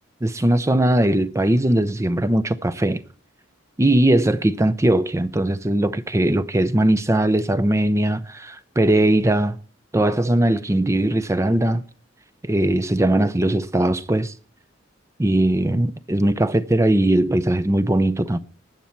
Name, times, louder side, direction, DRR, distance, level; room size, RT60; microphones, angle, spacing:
voice 1, 0.2-3.0 3.8-9.6 9.9-11.8 12.4-14.3 15.2-18.4, right 1 dB, 15° right, 0.5 m, -19 dB
19.5 x 7.1 x 4.5 m
head